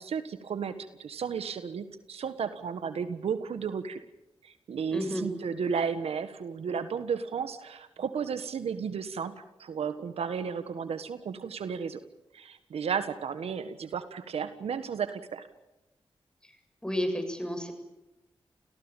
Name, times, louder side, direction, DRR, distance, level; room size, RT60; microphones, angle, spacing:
voice 1, 0.0-4.0 4.4-12.0 12.3-15.5, right 6 dB, 85° right, 11 dB, 1.5 m, -33 dB
voice 2, 4.9-5.3 16.8-17.7, left 1 dB, 10° left, 7 dB, 7.5 m, -31 dB
29.0 x 17.5 x 9.1 m, 0.97 s
cardioid pair, 45°, 10 cm